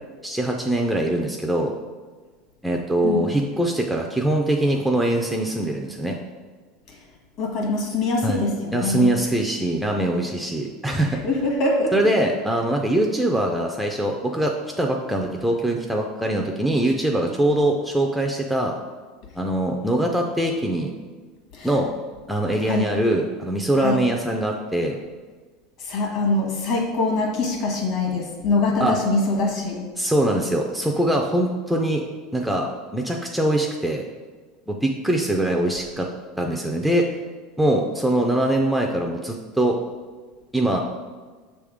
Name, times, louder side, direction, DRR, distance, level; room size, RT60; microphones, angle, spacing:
voice 1, 0.2-1.7 2.6-6.2 8.2-8.4 8.7-11.2 11.9-18.7 19.4-20.9 21.6-21.9 22.3-25.0 28.8-29.0 30.0-32.0 32.3-32.7 32.9-34.0 34.7-36.1 36.4-37.1 37.6-39.8 40.5-40.8, right 1 dB, ahead, 1 dB, 0.3 m, -22 dB
voice 2, 7.4-9.1 11.2-12.1 21.5-21.7 22.6-22.8 23.8-24.0 25.8-29.8, left 2 dB, 45° left, 0 dB, 1.4 m, -23 dB
6.9 x 3.5 x 4.9 m, 1.4 s
supercardioid pair, 160°, 0 cm